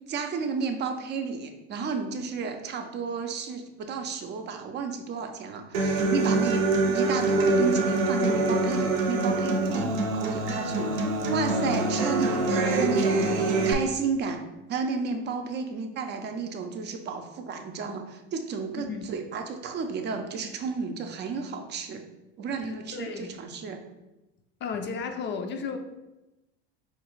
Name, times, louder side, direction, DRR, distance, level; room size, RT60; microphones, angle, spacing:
voice 1, 0.1-6.6 6.9-14.4 14.7-22.0 22.4-23.8, right 5 dB, 35° right, 6 dB, 0.6 m, -32 dB
Human voice / Acoustic guitar, 5.7-13.7, right 2 dB, 70° right, 0.7 m, -25 dB
voice 2, 22.6-23.4 24.6-25.8, left 5 dB, 35° left, 5 dB, 0.5 m, -34 dB
4.9 x 2.3 x 3.1 m, 1.0 s
hypercardioid pair, 90°, 32 cm